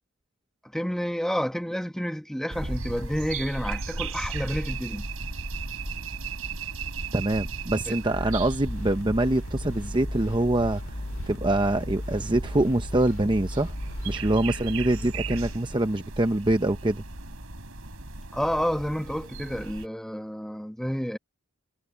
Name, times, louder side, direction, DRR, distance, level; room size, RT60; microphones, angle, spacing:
voice 1, 0.6-5.1 7.9-8.0 18.3-21.2, equal, ahead, 1.4 m, -30 dB
sound 1, 2.5-19.9, right 3 dB, 75° right, 4.1 m, -36 dB
sound 2, 5.2-10.6, equal, 35° left, 1.6 m, -47 dB
voice 2, 7.1-10.8 11.3-13.7 14.0-17.0, right 1 dB, 20° right, 0.8 m, -25 dB
sound 3, 8.1-15.6, left 1 dB, 60° left, 2.2 m, -36 dB
head